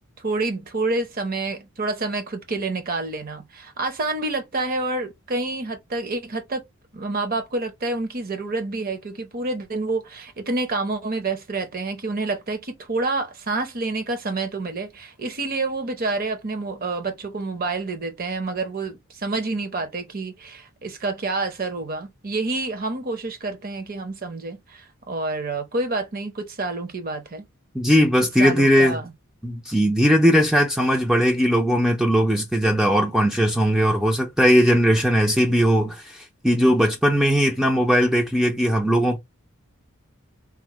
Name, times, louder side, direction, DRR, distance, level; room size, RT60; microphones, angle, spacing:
voice 1, 0.2-6.6 6.9-27.4 28.4-29.1, right 3 dB, 40° right, 0.7 m, -28 dB
voice 2, 27.7-29.0 29.4-39.2, equal, ahead, 0.4 m, -19 dB
3.6 x 2.0 x 3.0 m
head